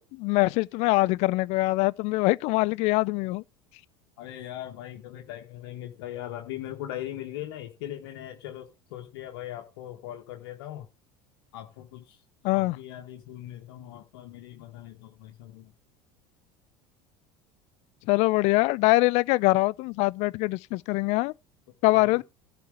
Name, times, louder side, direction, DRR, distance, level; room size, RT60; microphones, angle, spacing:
voice 1, 0.0-3.4 12.4-12.8 18.1-21.3 21.8-22.2, left 22 dB, 60° left, 0.4 m, -23 dB
voice 2, 4.2-10.9 11.5-12.2 12.5-15.7 21.8-22.2, left 12 dB, 75° left, 1.2 m, -40 dB
12.0 x 4.3 x 6.2 m
hypercardioid pair, 90°, 13 cm